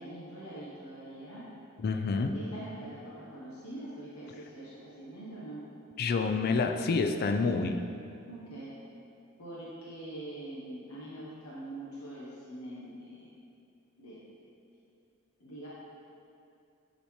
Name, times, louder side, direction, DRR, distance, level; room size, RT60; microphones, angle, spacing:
voice 1, 0.0-1.4 2.1-5.6 8.3-8.7 9.4-13.3 14.0-14.2 15.4-15.7, right 1 dB, 85° left, -7 dB, 1.0 m, -44 dB
voice 2, 1.8-2.4 6.0-7.8, left 4 dB, 45° left, 7 dB, 0.3 m, -28 dB
8.8 x 4.1 x 3.1 m, 2.6 s
head